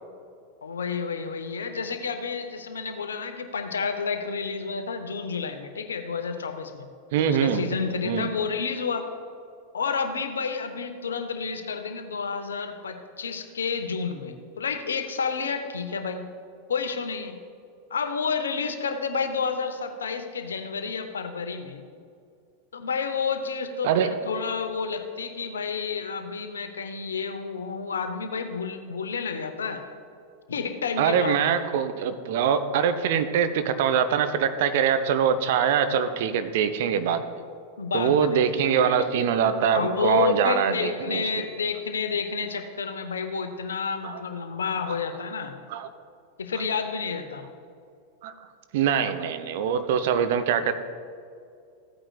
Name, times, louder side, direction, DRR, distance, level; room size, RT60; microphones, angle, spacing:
voice 1, 0.6-6.9 7.3-9.1 9.7-16.2 16.7-17.4 17.9-21.8 22.7-29.8 30.5-31.4 37.8-39.0 39.7-45.5 46.4-47.5, left 5 dB, 70° left, 8 dB, 0.8 m, -30 dB
voice 2, 7.1-7.7 8.0-8.3 23.8-24.1 31.0-37.2 37.9-41.5 44.0-44.2 45.7-45.9 48.2-48.3 48.7-50.7, right 7 dB, 50° right, 9 dB, 0.6 m, -23 dB
15.0 x 8.8 x 2.4 m, 2.4 s
figure-of-eight pair, 90°, 0 cm